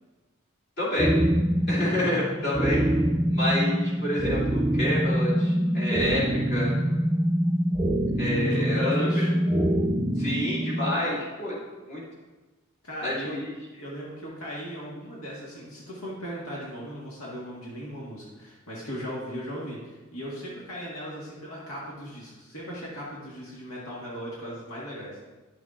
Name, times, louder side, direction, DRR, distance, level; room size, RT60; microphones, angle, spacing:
voice 1, 0.8-1.1 1.7-2.9 3.3-6.7 8.2-9.1 10.2-11.6 11.8-12.0 13.0-13.5, left 1 dB, 50° left, -7 dB, 2.6 m, -28 dB
sound 1, 1.0-11.0, right 1 dB, 15° right, 0.5 m, -25 dB
voice 2, 8.3-9.3 12.8-13.4 13.8-25.2, equal, 85° left, -6 dB, 1.6 m, -38 dB
10.5 x 6.4 x 2.5 m, 1.2 s
head